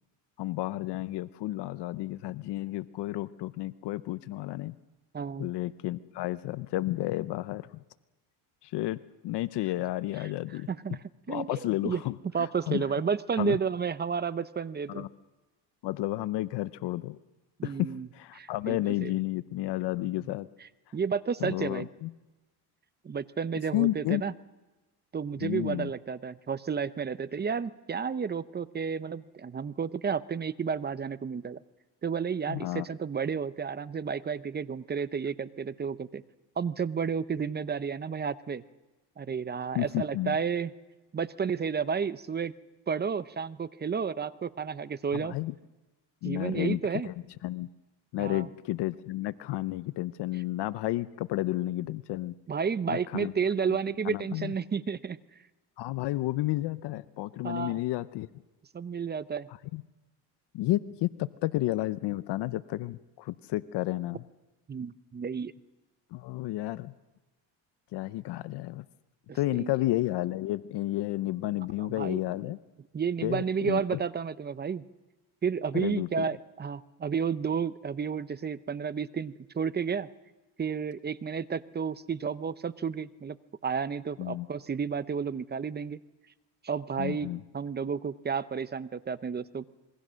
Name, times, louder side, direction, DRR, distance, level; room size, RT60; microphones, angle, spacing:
voice 1, 0.4-4.7 5.4-7.7 8.6-10.7 11.3-12.8 13.4-13.6 14.9-15.1 15.8-17.2 17.6-20.5 21.4-22.1 23.7-24.2 25.4-25.9 32.5-32.9 39.7-40.4 45.1-45.5 46.2-46.8 47.1-47.2 47.4-47.7 48.1-52.3 52.9-53.3 54.0-54.5 55.8-58.3 59.7-59.8 60.5-64.2 66.1-66.9 67.9-68.8 69.3-72.6 73.2-74.0 75.7-76.2 84.2-84.5 87.0-87.4, left 16 dB, 70° left, 15 dB, 0.8 m, -31 dB
voice 2, 5.1-5.5 10.2-11.0 11.3-12.0 12.3-15.1 17.6-18.1 18.3-19.1 20.6-21.9 23.0-24.3 25.1-31.6 32.0-36.2 36.6-38.6 39.2-40.7 41.1-42.5 42.9-45.4 46.2-47.1 48.2-48.5 52.5-55.2 57.4-57.8 58.7-59.5 64.7-65.5 69.3-69.7 71.9-72.2 72.9-74.8 75.4-80.1 80.6-83.4 83.6-86.0 86.6-89.7, right 6 dB, 25° right, 15 dB, 0.7 m, -32 dB
27.0 x 22.0 x 6.3 m, 1.1 s
cardioid pair, 110°, 43 cm